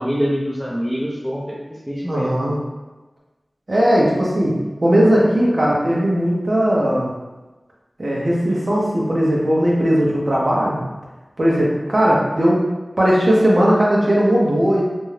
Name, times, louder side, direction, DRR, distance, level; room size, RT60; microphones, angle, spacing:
voice 1, 0.0-1.6 1.9-2.5, equal, ahead, -3 dB, 0.5 m, -24 dB
voice 2, 2.1-2.6 3.7-7.1 8.0-10.8 11.4-12.6 13.0-14.8, equal, 60° right, -5 dB, 0.8 m, -17 dB
2.6 x 2.2 x 3.2 m, 1.1 s
wide cardioid pair, 45°, 0 cm